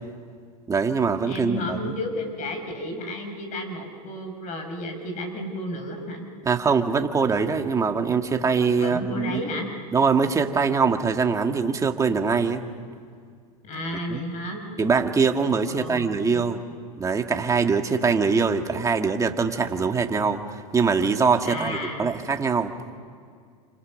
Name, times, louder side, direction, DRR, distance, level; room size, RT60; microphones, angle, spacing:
voice 1, 0.7-2.0 6.5-9.4 9.9-12.6 14.1-14.2 14.8-16.6 17.0-22.7, right 5 dB, 15° right, 5 dB, 2.0 m, -23 dB
voice 2, 1.2-6.3 8.8-9.7 13.6-14.6 15.7-16.5 21.4-22.1, left 1 dB, 40° left, 5 dB, 6.5 m, -32 dB
29.5 x 28.5 x 6.6 m, 2.1 s
supercardioid pair, 125°, 19 cm